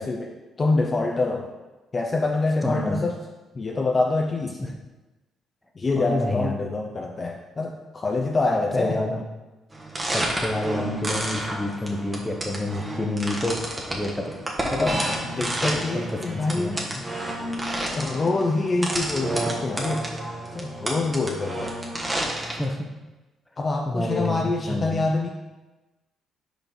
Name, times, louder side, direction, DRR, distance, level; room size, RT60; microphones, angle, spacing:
voice 1, 0.0-1.5 1.9-3.1 3.5-4.6 5.8-9.0 14.8-15.0 15.3-16.8 17.9-20.1 20.5-21.7 23.6-25.3, left 3 dB, 35° left, 1 dB, 0.5 m, -25 dB
voice 2, 2.6-3.0 6.0-6.6 8.8-9.2 10.1-14.4 14.7-15.1 15.9-17.0 22.4-22.8 23.9-25.0, left 1 dB, 10° left, 3 dB, 0.9 m, -29 dB
sound 1, 9.7-22.7, right 1 dB, 20° right, 1.2 m, -30 dB
5.5 x 4.4 x 4.3 m, 1.1 s
cardioid pair, 90°, 0 cm